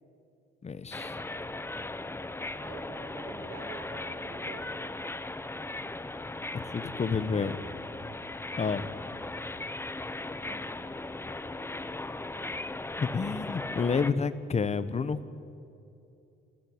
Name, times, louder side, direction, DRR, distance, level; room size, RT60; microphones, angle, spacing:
voice 1, 0.6-1.2 6.5-7.5 8.6-8.9 13.0-15.2, left 5 dB, 35° left, 15 dB, 1.1 m, -29 dB
sound 1, 0.9-14.1, left 2 dB, 10° left, 0.9 m, -38 dB
voice 2, 2.6-4.7 10.4-10.6, right 3 dB, 80° right, 0 dB, 6.6 m, -46 dB
26.0 x 14.0 x 9.7 m, 2.7 s
cardioid pair, 90°, 20 cm